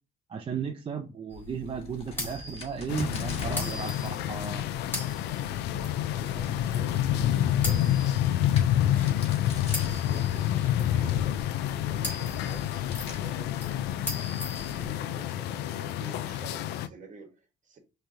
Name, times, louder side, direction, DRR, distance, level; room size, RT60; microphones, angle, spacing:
voice 1, 0.3-4.7, right 6 dB, 30° right, 0.6 m, -35 dB
sound 1, 1.3-14.9, left 2 dB, 10° left, 2.4 m, -41 dB
Crack, 1.6-14.9, left 1 dB, 35° left, 1.9 m, -45 dB
sound 2, 2.9-16.9, left 12 dB, 80° left, 0.5 m, -28 dB
voice 2, 6.1-8.5 8.9-13.5 14.5-17.8, right 3 dB, 50° right, 1.5 m, -49 dB
5.8 x 3.3 x 2.7 m
cardioid pair, 110°, 17 cm